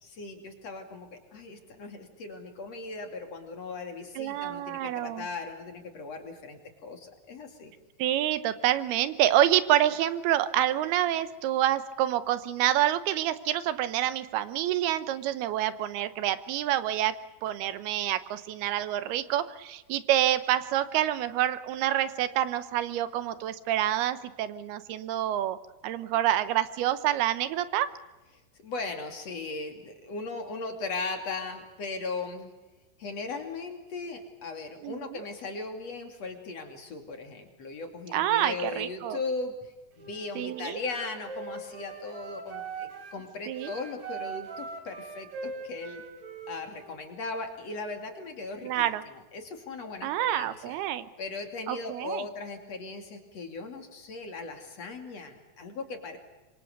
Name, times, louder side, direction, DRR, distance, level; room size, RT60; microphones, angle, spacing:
voice 1, 0.0-7.7 28.6-32.5 33.0-39.6 40.0-46.0 46.5-50.8 51.2-56.2, left 3 dB, 45° left, 5 dB, 3.4 m, -38 dB
voice 2, 4.2-5.3 8.0-17.1 17.4-25.6 25.8-27.9 34.8-35.3 38.1-39.2 40.4-40.8 43.5-43.7 48.6-49.0 50.0-51.1 51.7-52.2, right 12 dB, 85° right, 13 dB, 2.9 m, -27 dB
Wind instrument woodwind instrument, 39.9-43.2 43.6-47.0, right 5 dB, 45° right, 4.1 m, -41 dB
26.5 x 24.0 x 6.8 m, 1.1 s
omnidirectional pair, 4.5 m